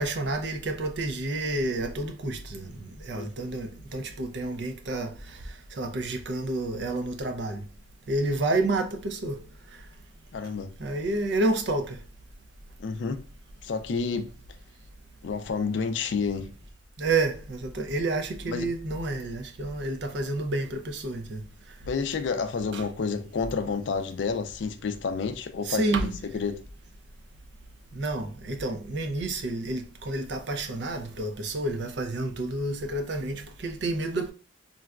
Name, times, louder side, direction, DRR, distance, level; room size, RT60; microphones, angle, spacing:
voice 1, 0.0-5.4 5.7-7.6 8.1-9.4 10.8-12.0 17.0-21.4 22.7-22.8 25.6-26.2 27.9-34.3, right 2 dB, 60° right, 0.5 m, -29 dB
voice 2, 10.3-10.8 12.8-13.2 13.6-14.3 15.2-16.5 18.5-18.7 21.9-26.6, left 5 dB, 65° left, 0.4 m, -30 dB
3.8 x 2.2 x 2.3 m
head